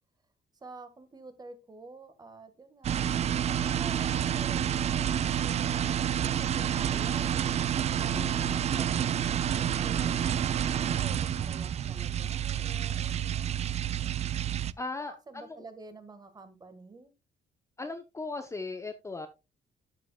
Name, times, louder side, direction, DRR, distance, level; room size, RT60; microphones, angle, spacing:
voice 1, 0.5-3.0 3.6-7.5 8.0-13.6 14.9-17.1, right 3 dB, 20° right, 1.5 m, -49 dB
sound 1, 2.8-14.7, right 9 dB, 35° right, 0.3 m, -29 dB
voice 2, 8.1-8.7 14.8-15.6 17.8-19.3, left 3 dB, 15° left, 0.7 m, -38 dB
12.5 x 7.4 x 2.2 m
cardioid pair, 180°, 18 cm